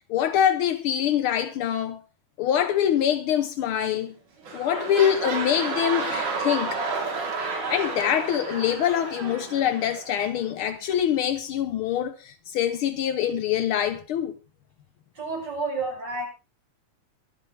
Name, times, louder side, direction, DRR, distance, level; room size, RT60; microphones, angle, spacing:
voice 1, 0.1-2.0 2.4-4.1 4.5-6.8 7.7-14.3, left 10 dB, 75° left, 1.2 m, -24 dB
sound 1, 3.9-4.1 4.4-10.2 10.9-11.0, right 4 dB, 90° right, 5.0 m, -31 dB
voice 2, 15.2-16.3, right 3 dB, 35° right, 7.1 m, -30 dB
23.5 x 9.2 x 3.3 m
omnidirectional pair, 3.5 m